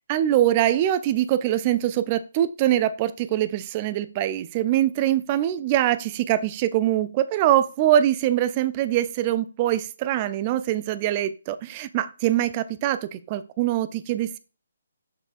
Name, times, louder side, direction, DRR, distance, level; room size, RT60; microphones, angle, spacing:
voice 1, 0.1-14.4, right 12 dB, 25° right, 13 dB, 0.4 m, -23 dB
6.8 x 5.6 x 2.5 m, 0.35 s
figure-of-eight pair, 140°, 0 cm